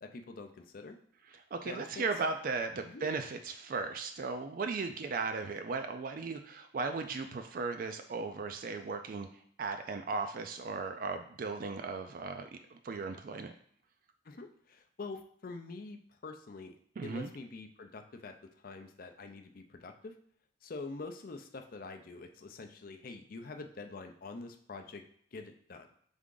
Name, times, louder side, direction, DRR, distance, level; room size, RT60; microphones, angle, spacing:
voice 1, 0.0-1.0 1.7-2.0 2.9-3.0 14.3-16.7 17.0-18.3 18.6-20.1 20.6-25.0 25.3-25.9, left 3 dB, 50° left, 6 dB, 0.5 m, -45 dB
voice 2, 1.3-9.3 9.6-13.5 17.0-17.3, right 4 dB, 50° right, 6 dB, 0.4 m, -36 dB
3.6 x 3.5 x 3.8 m, 0.63 s
head